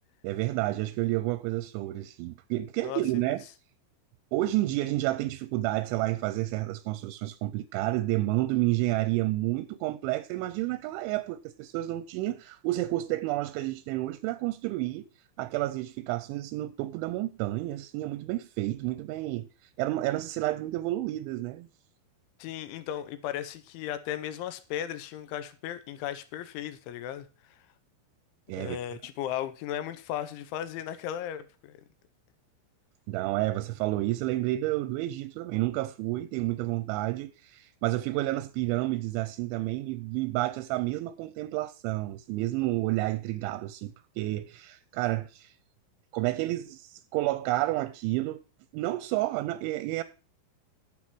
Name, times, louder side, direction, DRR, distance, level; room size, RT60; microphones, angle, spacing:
voice 1, 0.2-3.4 4.3-15.1 15.4-19.5 19.8-21.7 28.5-28.8 33.1-45.5 46.1-48.4 48.7-50.0, right 17 dB, 80° right, 2.8 m, -30 dB
voice 2, 22.4-27.6 28.6-31.8, left 11 dB, 80° left, 3.1 m, -36 dB
10.0 x 7.7 x 6.1 m
omnidirectional pair, 5.8 m